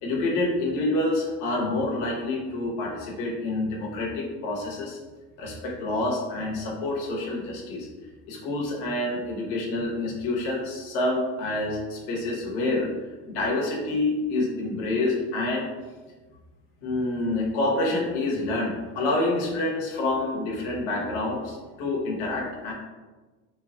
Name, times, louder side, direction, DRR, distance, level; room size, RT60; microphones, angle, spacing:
voice 1, 0.0-5.0 5.4-7.9 8.3-12.9 13.3-15.7 16.8-22.7, left 2 dB, 70° left, -3 dB, 1.0 m, -27 dB
3.0 x 2.3 x 3.6 m, 1.3 s
cardioid pair, 165°, 33 cm